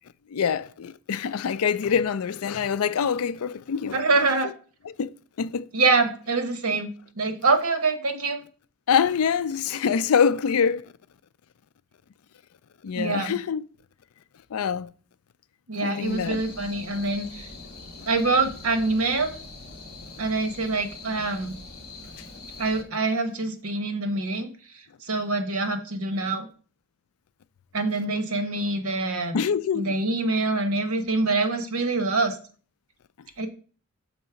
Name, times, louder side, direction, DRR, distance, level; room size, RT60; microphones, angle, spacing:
voice 1, 0.3-4.0 5.0-5.1 5.4-5.7 8.9-10.9 12.8-13.6 14.5-14.9 15.8-16.4 29.3-29.9, left 7 dB, 75° left, 0.4 m, -25 dB
voice 2, 3.9-4.5 5.7-8.4 13.0-13.4 15.7-17.5 18.1-19.3 20.2-21.5 22.6-24.5 25.0-26.5 27.7-29.4 29.7-32.4 33.4-33.5, right 3 dB, 70° right, 1.1 m, -25 dB
sound 1, 16.0-22.8, left 3 dB, 45° left, 1.3 m, -43 dB
6.4 x 4.0 x 5.8 m
head